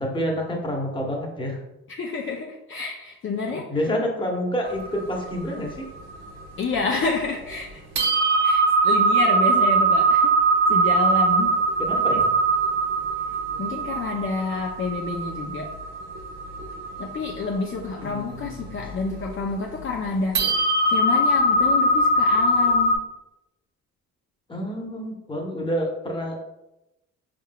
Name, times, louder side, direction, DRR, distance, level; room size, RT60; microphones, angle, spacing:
voice 1, 0.0-1.6 3.5-5.9 11.8-12.3 13.5-13.6 18.0-18.8 24.5-26.4, equal, 15° left, 0 dB, 1.0 m, -28 dB
voice 2, 1.9-3.7 6.6-7.8 8.4-10.4 10.7-11.6 11.9-12.2 13.6-15.7 17.0-23.1, left 4 dB, 45° left, 0 dB, 0.5 m, -29 dB
sound 1, 4.7-7.0 7.5-7.6 8.0-23.0, right 2 dB, 60° right, 1.1 m, -22 dB
4.5 x 3.6 x 2.2 m, 0.92 s
cardioid pair, 90°, 30 cm